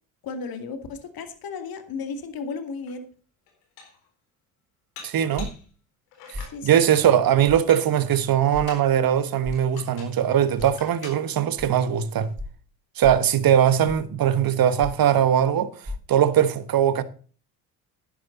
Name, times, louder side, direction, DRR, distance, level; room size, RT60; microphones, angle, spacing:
voice 1, 0.2-3.0 6.5-6.7, left 4 dB, 50° left, 2.4 m, -34 dB
Dishes pots and pans, 2.9-3.0 3.5-4.1 5.0-5.7 6.1-6.6 7.4-8.9 9.5-10.2 10.6-11.2, left 5 dB, 80° left, 4.1 m, -45 dB
voice 2, 5.0-5.5 6.6-12.3 13.0-15.7 16.1-17.0, right 9 dB, 50° right, 1.5 m, -20 dB
sound 1, 5.3-5.7 6.3-6.5 7.5-7.6 8.5-8.7 9.4-9.7 10.6-10.7 11.6-11.7 12.3-12.6 13.0-13.3 13.9-14.1 14.8-15.1 15.8-16.0, left 2 dB, 25° right, 4.7 m, -35 dB
11.5 x 10.5 x 3.9 m
hypercardioid pair, 60°, 45 cm